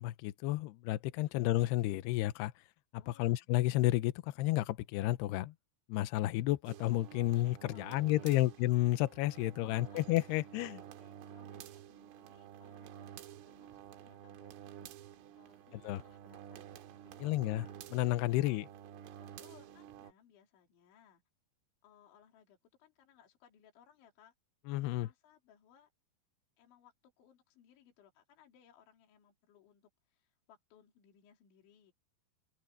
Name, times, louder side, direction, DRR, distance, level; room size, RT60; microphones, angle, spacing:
voice 1, 0.0-2.5 3.1-5.5 5.9-10.8 15.7-16.0 17.2-18.7 24.7-25.1, left 16 dB, 85° left, 2.3 m, -31 dB
voice 2, 3.0-3.5 7.7-8.5 9.4-10.1 11.0-17.3 18.3-18.6 19.4-21.2 21.8-24.3 24.9-25.9 26.6-31.9, left 9 dB, 65° left, 5.8 m, -65 dB
sound 1, 6.7-20.1, right 10 dB, 85° right, 4.1 m, -51 dB
open air
omnidirectional pair, 5.8 m